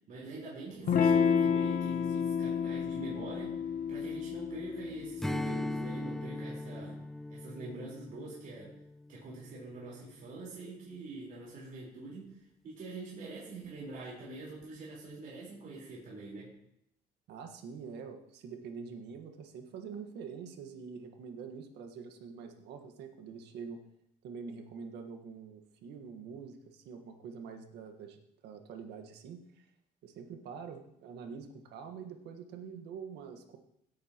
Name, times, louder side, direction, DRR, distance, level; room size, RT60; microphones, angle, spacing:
voice 1, 0.1-3.6 3.9-7.0 7.3-8.7 9.1-16.5, right 3 dB, 55° right, -6 dB, 4.4 m, -45 dB
Electric guitar / Strum, 0.9-6.0, left 7 dB, 55° left, 1.1 m, -30 dB
Strum, 5.2-10.0, left 1 dB, ahead, 0.3 m, -39 dB
voice 2, 17.3-23.8 24.2-29.7 30.0-33.6, right 6 dB, 80° right, 6 dB, 1.6 m, -45 dB
17.0 x 8.8 x 3.0 m, 0.77 s
cardioid pair, 110°, 17 cm